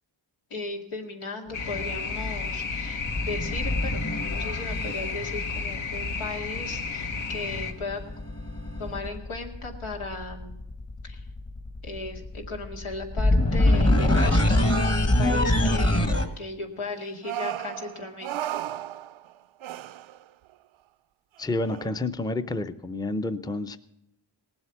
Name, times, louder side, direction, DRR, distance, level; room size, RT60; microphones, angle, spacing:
voice 1, 0.5-8.0 8.8-10.6 11.0-11.2 11.8-16.1 16.4-18.6, left 3 dB, 90° left, 2 dB, 2.2 m, -36 dB
sound 1, 1.5-7.7, left 4 dB, 70° left, 1.4 m, -32 dB
sound 2, 1.5-1.8 3.0-5.1 6.9-16.3, left 1 dB, 30° left, 1.7 m, -25 dB
sound 3, 17.2-19.3 19.6-20.2 20.5-20.6 21.4-21.9, right 13 dB, 75° right, 0.5 m, -35 dB
voice 2, 21.4-23.8, left 2 dB, 10° left, 11 dB, 0.6 m, -29 dB
18.5 x 8.0 x 7.0 m, 0.83 s
cardioid pair, 75°, 48 cm